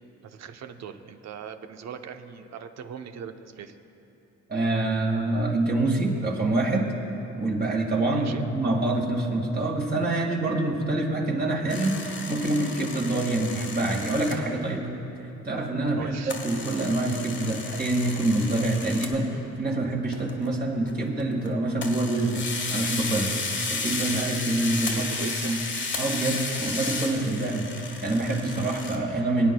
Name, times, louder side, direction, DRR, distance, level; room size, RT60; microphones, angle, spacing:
voice 1, 0.2-3.8 8.1-8.5 16.0-16.3 24.8-25.6, right 7 dB, 60° right, 8 dB, 0.7 m, -40 dB
voice 2, 4.5-6.9 7.4-14.9 15.4-23.3 23.7-25.6 26.0-27.7 28.0-29.5, right 2 dB, 30° right, -1 dB, 1.8 m, -26 dB
sound 1, 11.7-14.3 16.3-19.2 20.1-20.5 20.9-21.5 21.8-29.0, left 4 dB, 40° left, 1.4 m, -33 dB
24.0 x 9.3 x 2.2 m, 2.9 s
cardioid pair, 90°, 30 cm